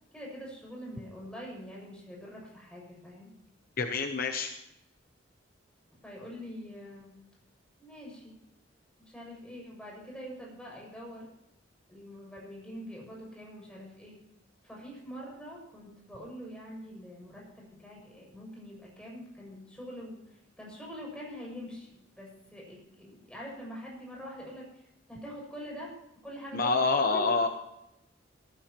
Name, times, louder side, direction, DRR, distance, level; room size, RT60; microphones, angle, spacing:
voice 1, 0.1-3.3 6.0-7.1 7.8-8.4 9.0-11.3 11.9-14.2 14.6-24.7 25.1-25.9 26.2-26.8 27.1-27.3, equal, 5° left, -3 dB, 6.7 m, -44 dB
voice 2, 3.8-4.5 26.5-27.5, left 4 dB, 50° left, 5 dB, 1.0 m, -27 dB
19.0 x 14.5 x 3.0 m, 0.85 s
head